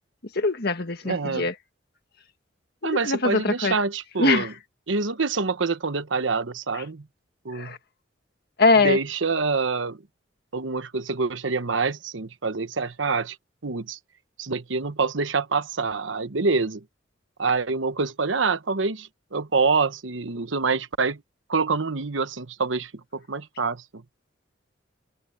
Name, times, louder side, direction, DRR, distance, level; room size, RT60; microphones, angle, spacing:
voice 1, 0.4-1.5 2.8-3.7 4.2-4.5 7.5-7.8 8.6-9.0, left 3 dB, 55° left, 1.8 m, -22 dB
voice 2, 1.0-1.5 2.8-4.5 4.9-7.1 7.4-7.7 8.8-10.0 10.5-13.4 13.6-14.0 14.4-16.8 17.4-21.2 21.5-24.0, right 4 dB, 85° right, 1.1 m, -26 dB
head